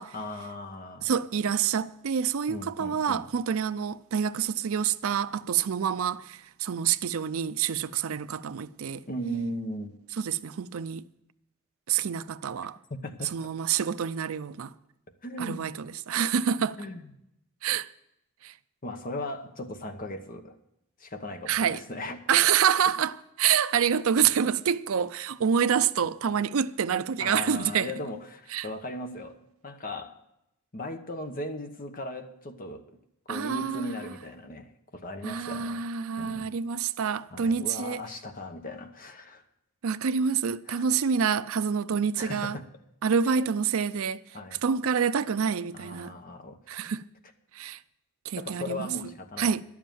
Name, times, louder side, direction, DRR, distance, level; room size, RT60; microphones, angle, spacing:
voice 1, 0.1-1.1 2.5-3.3 9.1-10.0 12.9-13.3 15.2-15.7 16.8-17.1 18.8-20.6 21.0-22.2 27.2-29.4 29.6-30.1 30.7-33.0 33.3-35.9 36.2-36.5 37.3-39.4 40.7-40.8 42.2-42.7 43.2-43.6 44.3-44.6 45.7-46.6 48.4-49.5, left 1 dB, 40° left, 1.0 m, -37 dB
voice 2, 1.0-9.0 10.2-11.0 11.9-12.8 13.3-14.7 15.4-15.7 16.1-16.8 17.6-17.9 18.4-18.5 21.5-21.8 22.3-27.9 28.5-28.7 33.3-34.1 35.2-38.0 39.8-42.6 43.0-44.2 44.6-46.1 46.7-47.0 47.5-47.8 48.3-48.9 49.4-49.6, right 7 dB, 70° right, 0.5 m, -27 dB
11.5 x 7.3 x 9.1 m
head